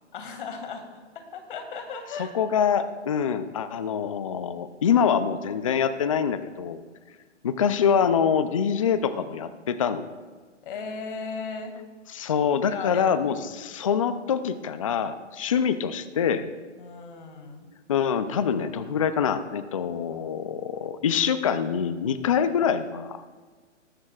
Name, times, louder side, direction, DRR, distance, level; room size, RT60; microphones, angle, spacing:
voice 1, 0.1-0.9 1.1-2.3 10.6-11.7 12.7-13.5 16.8-17.7, left 5 dB, 45° left, 5 dB, 2.0 m, -36 dB
voice 2, 2.2-6.8 7.4-10.0 12.1-16.4 17.9-23.2, left 7 dB, 30° left, 12 dB, 0.4 m, -25 dB
18.0 x 14.0 x 2.4 m, 1.4 s
hypercardioid pair, 150°, 37 cm